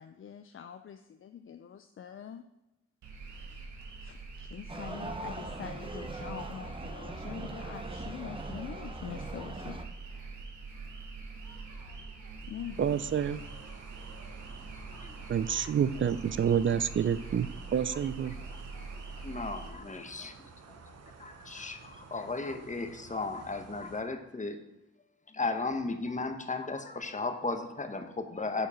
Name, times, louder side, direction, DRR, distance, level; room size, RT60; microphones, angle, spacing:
voice 1, 0.0-2.4 4.0-9.8 12.5-13.0 13.3-13.4, left 8 dB, 45° left, 8 dB, 0.4 m, -44 dB
sound 1, 3.0-19.7, right 4 dB, 90° right, 1.2 m, -44 dB
people football argentina, 4.7-9.8, right 2 dB, 20° right, 0.8 m, -41 dB
sound 2, 12.7-24.0, right 5 dB, 60° right, 0.9 m, -52 dB
voice 2, 12.8-13.4 15.3-18.3, right 8 dB, 45° right, 15 dB, 0.4 m, -28 dB
voice 3, 15.0-15.7 18.5-18.9 19.1-20.3 20.8-24.6 25.3-28.7, left 3 dB, 25° left, 6 dB, 1.0 m, -36 dB
6.9 x 4.5 x 5.5 m, 0.95 s
cardioid pair, 60°, 29 cm